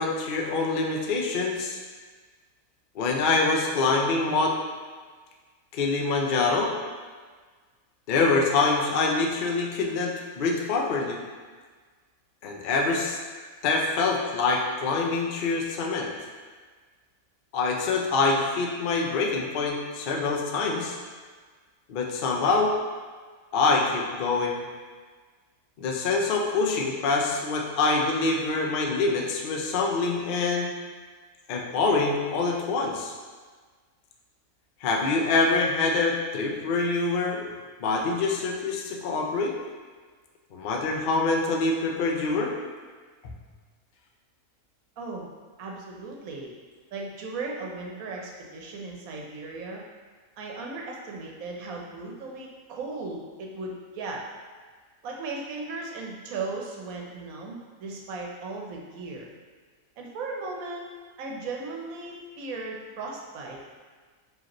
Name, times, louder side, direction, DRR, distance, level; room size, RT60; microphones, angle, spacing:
voice 1, 0.0-1.8 3.0-4.5 5.7-6.7 8.1-11.2 12.4-13.2 13.6-16.1 17.5-21.0 21.9-22.7 23.5-24.6 25.8-30.7 31.5-33.1 34.8-39.5 40.5-42.5 43.2-43.4, left 3 dB, 60° left, 0 dB, 0.5 m, -25 dB
voice 2, 45.0-45.3 45.6-46.5 46.9-49.8 50.4-54.2 55.0-59.3 60.0-60.9 61.2-63.6, right 3 dB, 80° right, -1 dB, 1.1 m, -36 dB
4.9 x 3.1 x 3.0 m, 1.5 s
omnidirectional pair, 1.5 m